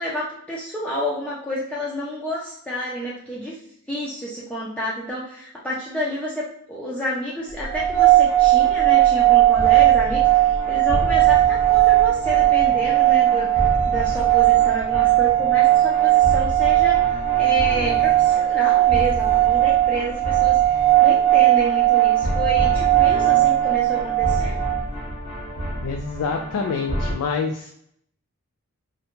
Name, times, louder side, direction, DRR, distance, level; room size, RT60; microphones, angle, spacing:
voice 1, 0.0-3.6 3.9-24.6, equal, 5° left, -7 dB, 0.4 m, -30 dB
sound 1, 7.7-27.1, equal, 35° right, 0.7 m, -31 dB
sound 2, 7.7-24.8, right 15 dB, 55° right, 0.4 m, -18 dB
voice 2, 25.8-27.7, left 5 dB, 75° left, 4 dB, 0.3 m, -26 dB
2.5 x 2.1 x 2.8 m, 0.70 s
head